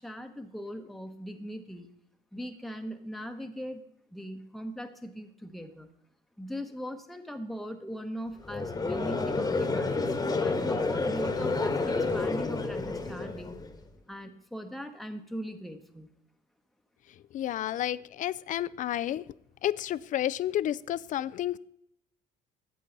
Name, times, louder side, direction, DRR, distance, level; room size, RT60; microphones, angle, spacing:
voice 1, 0.0-1.9 2.3-5.9 6.4-10.0 10.4-13.6 14.1-16.1, equal, ahead, 5 dB, 1.0 m, -40 dB
Conversation / Crowd, 8.4-13.7, left 3 dB, 20° left, 1.3 m, -29 dB
voice 2, 17.3-19.2 19.6-21.6, left 12 dB, 50° left, 19 dB, 0.4 m, -31 dB
12.5 x 8.2 x 3.9 m, 0.74 s
cardioid pair, 110°, 17 cm